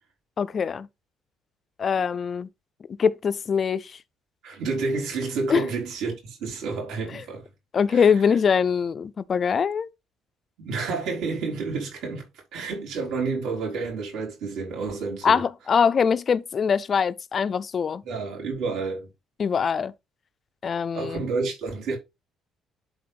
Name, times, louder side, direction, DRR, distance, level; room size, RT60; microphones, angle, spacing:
voice 1, 0.4-0.9 1.8-2.5 3.0-4.0 5.5-5.6 7.1-7.2 7.7-9.9 15.2-18.0 19.4-19.9 20.6-21.2, left 6 dB, 30° left, 0.4 m, -23 dB
voice 2, 4.4-7.5 7.9-8.2 10.6-12.3 12.5-15.4 18.0-19.1 20.9-22.0, right 4 dB, 75° right, 4.4 m, -30 dB
11.5 x 3.9 x 3.4 m
cardioid pair, 175°, 0 cm